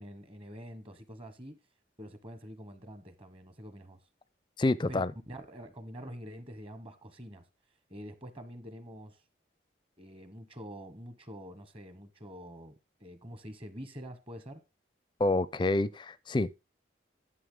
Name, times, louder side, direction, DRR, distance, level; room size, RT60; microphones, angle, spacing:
voice 1, 0.0-1.6 2.0-4.0 4.9-7.4 7.9-9.2 10.0-12.7 13.0-14.6, equal, 30° right, 1.1 m, -46 dB
voice 2, 4.6-5.1 15.2-16.6, left 2 dB, 25° left, 0.4 m, -28 dB
11.0 x 6.6 x 3.8 m
head